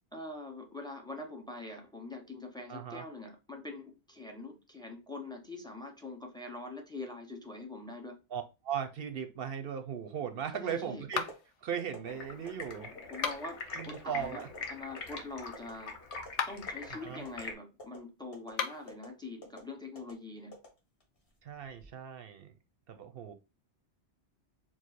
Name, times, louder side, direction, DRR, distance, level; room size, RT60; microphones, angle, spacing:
voice 1, 0.1-8.2 10.5-11.0 13.1-14.4 14.7-16.0 16.5-20.5, left 2 dB, 5° left, 0.5 m, -44 dB
voice 2, 2.7-3.0 8.3-11.2 11.6-12.9 13.7-14.5 17.0-17.2 21.4-22.5 22.9-23.3, right 8 dB, 65° right, 0.7 m, -38 dB
sound 1, 10.5-10.8 11.1-11.3 11.8-12.0 12.5-12.6 13.1-13.3 13.8-14.0 14.4-14.6 15.0-15.2 15.5-15.7 16.1-16.3 16.7-16.9 17.3-17.5 17.8-18.0 18.3-18.5 18.9-19.1 19.4-19.6 20.0-20.1 20.5-21.2 21.6-21.9, equal, 55° left, 1.7 m, -47 dB
sound 2, 11.1-11.6 13.1-13.7 16.2-16.8 18.5-19.0, left 7 dB, 90° left, 1.0 m, -36 dB
Stream, 12.0-17.5, left 4 dB, 70° left, 1.3 m, -44 dB
4.7 x 2.0 x 4.1 m
omnidirectional pair, 1.2 m